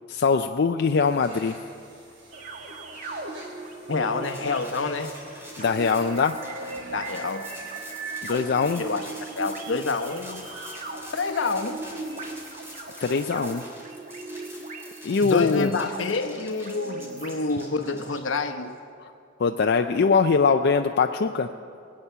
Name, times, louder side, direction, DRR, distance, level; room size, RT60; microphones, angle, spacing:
voice 1, 0.1-1.5 5.6-6.4 8.2-8.8 13.0-13.6 15.0-15.7 19.4-21.5, left 5 dB, 60° left, 6 dB, 0.4 m, -22 dB
sound 1, 0.9-12.7, right 1 dB, 70° right, 4.5 m, -49 dB
sound 2, 2.3-18.1, right 3 dB, 45° right, 1.2 m, -39 dB
voice 2, 3.9-5.1 6.9-7.5 8.8-10.8 11.1-11.8 15.2-18.8, left 3 dB, 80° left, 7 dB, 0.9 m, -28 dB
sound 3, 4.2-18.7, equal, 15° right, 2.9 m, -46 dB
21.0 x 8.7 x 6.8 m, 2.5 s
head